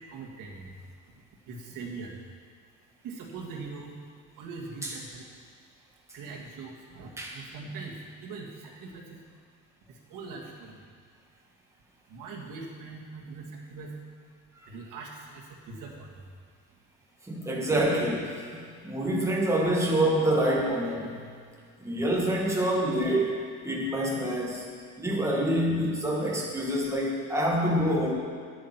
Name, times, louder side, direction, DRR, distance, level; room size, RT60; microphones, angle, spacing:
voice 1, 0.1-0.8 1.5-2.2 3.0-3.9 4.4-5.3 6.1-8.0 8.2-9.2 9.9-10.8 12.1-13.9 14.7-16.1, right 4 dB, 80° right, -1 dB, 2.0 m, -41 dB
voice 2, 17.3-21.2 21.8-23.3 23.6-24.7 25.0-28.1, right 1 dB, 10° right, -2 dB, 1.6 m, -26 dB
10.0 x 9.7 x 6.0 m, 2.1 s
cardioid pair, 175°, 32 cm